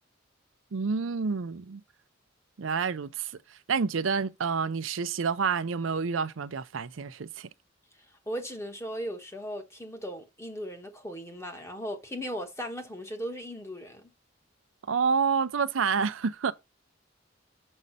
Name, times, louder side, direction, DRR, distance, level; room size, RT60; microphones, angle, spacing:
voice 1, 0.7-1.8 2.6-3.3 3.7-7.5 14.9-16.5, right 5 dB, 85° right, 0.5 m, -28 dB
voice 2, 8.3-14.1, equal, 15° left, 1.2 m, -37 dB
6.3 x 5.3 x 4.1 m
head